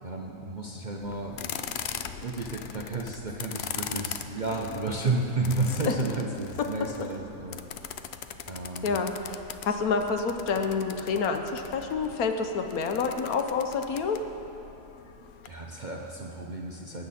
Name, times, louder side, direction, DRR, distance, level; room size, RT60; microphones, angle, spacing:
voice 1, 0.0-7.8 8.5-8.9 15.4-17.1, right 2 dB, 40° right, -1 dB, 0.7 m, -32 dB
sound 1, 1.0-15.5, left 8 dB, 85° left, 0.5 m, -41 dB
voice 2, 8.8-14.2, left 5 dB, 65° left, 6 dB, 1.2 m, -28 dB
18.5 x 8.9 x 4.2 m, 2.8 s
omnidirectional pair, 1.7 m